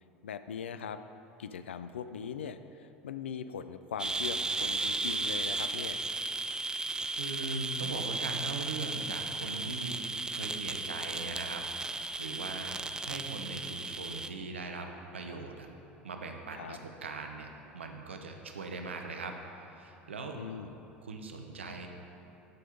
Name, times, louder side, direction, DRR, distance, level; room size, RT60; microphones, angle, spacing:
voice 1, 0.2-1.0 1.4-6.0 16.5-16.8 20.3-20.7, left 7 dB, 80° left, 11 dB, 0.3 m, -40 dB
sound 1, 4.0-14.3, right 3 dB, 10° right, 0.4 m, -35 dB
voice 2, 7.2-10.0 10.3-15.7 16.0-20.4 21.0-21.9, right 3 dB, 85° right, 4 dB, 0.8 m, -40 dB
10.5 x 5.5 x 5.1 m, 2.8 s
figure-of-eight pair, 75°, 6 cm